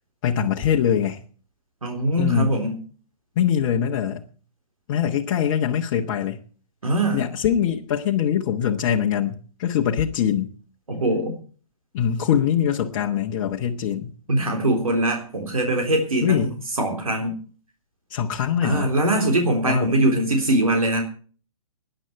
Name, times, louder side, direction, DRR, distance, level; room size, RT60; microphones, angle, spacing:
voice 1, 0.2-1.2 2.2-2.5 3.3-4.3 4.9-6.4 7.1-10.5 11.9-14.1 16.2-16.5 18.1-18.9 19.6-19.9, left 9 dB, 35° left, 1.4 m, -23 dB
voice 2, 1.8-2.8 6.8-7.2 10.9-11.4 14.3-17.3 18.6-21.0, right 1 dB, 75° right, 3.6 m, -22 dB
19.5 x 10.5 x 4.5 m
figure-of-eight pair, 120°, 18 cm